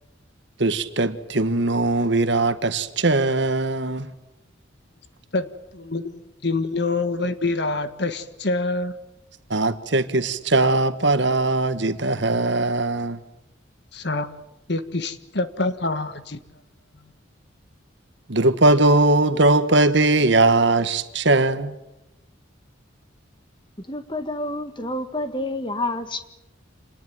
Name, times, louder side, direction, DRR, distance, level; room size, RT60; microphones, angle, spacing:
voice 1, 0.6-4.1 9.5-13.2 18.3-21.8, right 2 dB, 60° right, 1.6 m, -20 dB
voice 2, 5.3-8.9 13.9-14.4 14.7-16.4, left 2 dB, 55° left, 1.6 m, -26 dB
voice 3, 23.8-26.2, left 2 dB, 25° left, 1.7 m, -29 dB
28.0 x 19.5 x 9.2 m
head